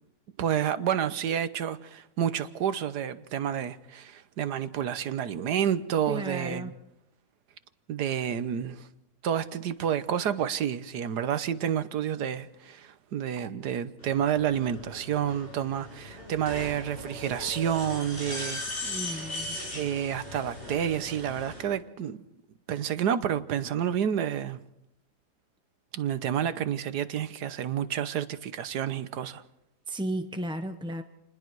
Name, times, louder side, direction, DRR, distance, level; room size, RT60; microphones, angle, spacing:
voice 1, 0.4-6.7 7.9-8.9 9.2-19.2 19.7-22.2 22.7-24.6 25.9-29.4, right 9 dB, 80° right, 1.6 m, -29 dB
voice 2, 6.1-6.7 18.8-19.6 29.9-31.0, right 1 dB, 5° right, 0.5 m, -34 dB
sound 1, 14.0-21.6, left 2 dB, 35° left, 7.5 m, -39 dB
28.5 x 20.5 x 4.7 m
omnidirectional pair, 1.7 m